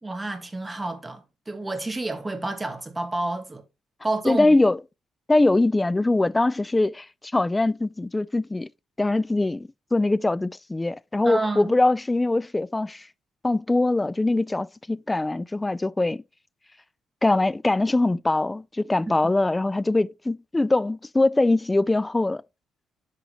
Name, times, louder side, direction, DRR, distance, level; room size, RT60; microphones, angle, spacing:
voice 1, 0.0-3.6 4.0-4.5 11.2-11.7, right 2 dB, 20° right, 1.7 m, -29 dB
voice 2, 4.2-4.8 5.3-8.7 9.0-13.1 13.4-16.2 17.2-22.4, left 2 dB, 15° left, 0.3 m, -22 dB
10.5 x 3.8 x 3.0 m
cardioid pair, 90°, 0 cm